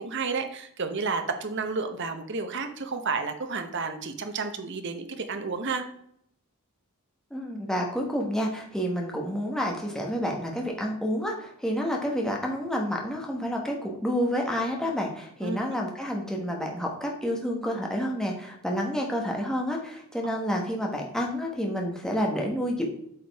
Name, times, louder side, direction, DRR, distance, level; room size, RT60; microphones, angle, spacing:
voice 1, 0.0-5.8 15.4-15.6, right 4 dB, 55° right, 7 dB, 0.9 m, -31 dB
voice 2, 7.3-22.8, equal, 5° left, 0 dB, 1.1 m, -29 dB
8.4 x 5.1 x 3.5 m, 0.72 s
head